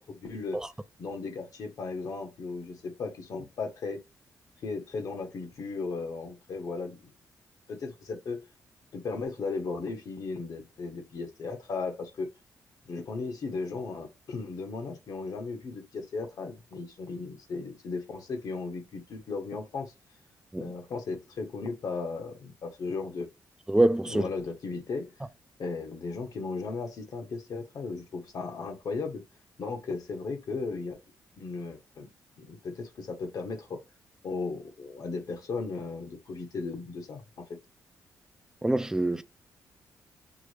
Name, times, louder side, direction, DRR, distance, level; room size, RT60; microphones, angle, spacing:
voice 1, 0.2-0.6 1.0-4.0 4.6-7.0 7.7-8.4 8.9-12.3 12.9-19.9 20.6-23.3 24.1-25.1 25.6-29.2 29.6-31.0 31.4-32.1 32.4-33.8 34.2-37.5, left 4 dB, 65° left, 1.1 m, -36 dB
voice 2, 23.7-24.2 38.6-39.2, right 1 dB, 10° right, 0.4 m, -25 dB
6.0 x 2.1 x 3.3 m
cardioid pair, 80°, 7 cm